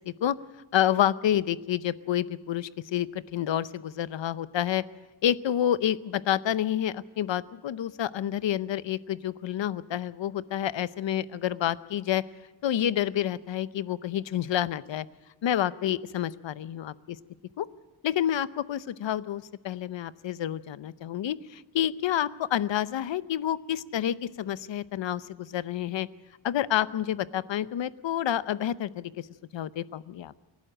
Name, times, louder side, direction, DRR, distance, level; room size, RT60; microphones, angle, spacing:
voice 1, 0.7-4.8 5.2-12.2 12.6-15.1 15.4-17.2 17.6-17.7 18.0-26.1 26.4-29.3 29.5-30.3, left 11 dB, 80° left, 16 dB, 0.8 m, -29 dB
27.0 x 11.5 x 8.8 m, 1.1 s
wide cardioid pair, 105°, 44 cm